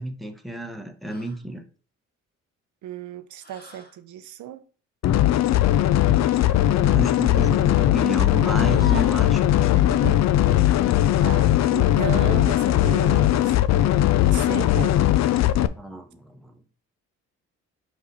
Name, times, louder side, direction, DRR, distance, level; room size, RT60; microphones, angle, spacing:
voice 1, 0.0-1.6 6.6-9.9 15.7-16.6, right 1 dB, ahead, 0.9 m, -31 dB
sound 1, 1.0-1.4 3.4-4.0 6.0-6.6 8.4-9.3 11.0-11.2 13.2-13.7 15.1-15.6, left 3 dB, 30° left, 1.1 m, -43 dB
voice 2, 2.8-4.6 9.9-10.2 11.2-15.0, right 11 dB, 70° right, 0.7 m, -35 dB
sound 2, 5.0-15.7, left 13 dB, 60° left, 0.5 m, -19 dB
4.9 x 4.7 x 4.0 m
cardioid pair, 90°, 30 cm